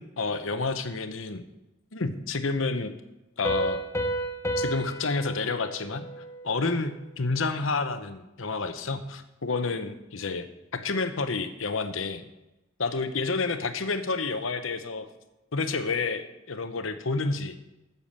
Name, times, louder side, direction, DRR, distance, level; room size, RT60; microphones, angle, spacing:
voice 1, 0.0-1.4 1.9-2.9 3.4-3.8 4.6-6.0 6.4-10.5 10.7-12.2 12.8-15.1 15.5-17.6, left 3 dB, 80° left, 9 dB, 1.0 m, -29 dB
Piano, 3.4-6.9, right 1 dB, 15° left, 0.9 m, -32 dB
9.7 x 7.0 x 7.4 m, 0.97 s
head